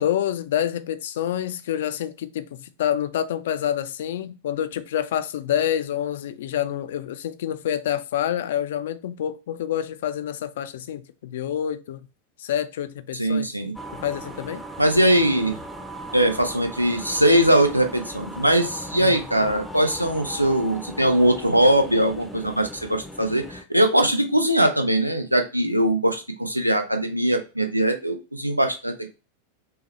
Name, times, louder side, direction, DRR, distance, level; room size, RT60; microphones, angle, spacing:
voice 1, 0.0-12.1 12.4-13.5 13.9-14.6 19.0-19.2, left 10 dB, 60° left, 0.4 m, -27 dB
voice 2, 13.1-13.7 14.8-15.6 16.1-29.1, right 1 dB, 90° right, 0.6 m, -21 dB
sound 1, 13.7-23.6, right 1 dB, ahead, 0.6 m, -38 dB
5.5 x 2.1 x 3.0 m
figure-of-eight pair, 90°, 0 cm